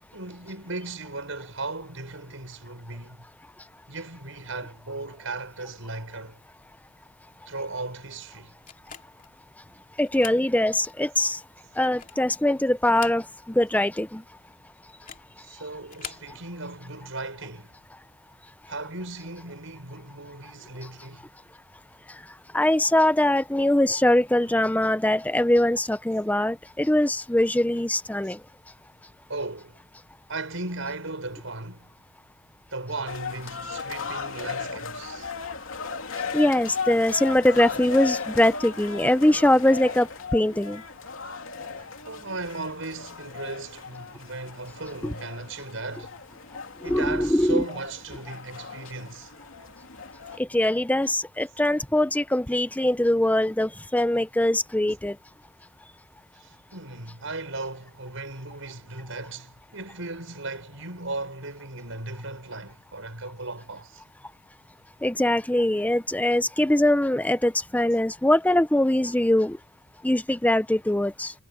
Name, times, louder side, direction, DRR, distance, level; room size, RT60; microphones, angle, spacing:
voice 1, 0.1-3.2 3.9-6.4 7.5-8.5 15.4-17.7 18.7-21.3 28.2-28.3 29.3-29.8 30.3-32.0 32.7-35.3 42.0-46.2 46.8-49.3 56.4-64.0, right 3 dB, 70° right, 7.0 m, -36 dB
sound 1, 8.7-9.3 10.0-10.5 10.9-11.0 11.7-12.3 12.8-13.6 13.9-14.0 14.9-15.3 15.8-16.3, left 8 dB, 40° left, 2.8 m, -43 dB
voice 2, 10.0-11.4 11.8-14.2 22.5-28.4 36.3-40.8 45.0-45.1 46.8-47.7 50.4-55.2 65.0-69.6 70.0-71.3, left 1 dB, 10° left, 0.7 m, -22 dB
sound 2, 33.1-50.4, left 5 dB, 75° left, 3.0 m, -36 dB
head